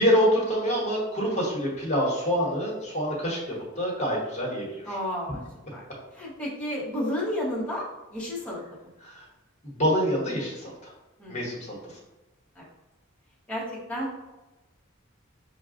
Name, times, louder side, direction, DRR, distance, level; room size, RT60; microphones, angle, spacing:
voice 1, 0.0-4.7 9.0-9.1 9.6-10.9 11.3-11.6 11.8-11.9, equal, 30° left, -3 dB, 1.0 m, -26 dB
voice 2, 4.8-5.4 5.7-5.9 6.1-7.9 8.1-8.6 11.2-11.4 12.6-12.7 13.5-14.1, left 1 dB, 5° left, -7 dB, 0.8 m, -31 dB
5.6 x 2.2 x 2.4 m, 1.1 s
head